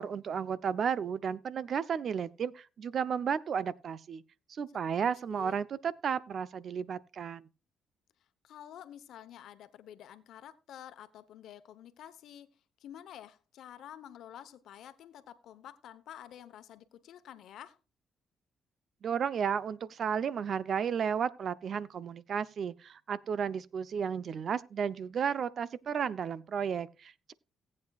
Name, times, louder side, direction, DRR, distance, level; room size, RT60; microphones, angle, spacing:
voice 1, 0.0-4.2 4.5-7.5 19.0-27.3, right 7 dB, 55° right, 0.6 m, -33 dB
voice 2, 4.9-5.6 8.4-17.8, left 10 dB, 75° left, 1.0 m, -50 dB
18.0 x 8.5 x 2.4 m
cardioid pair, 90°, 0 cm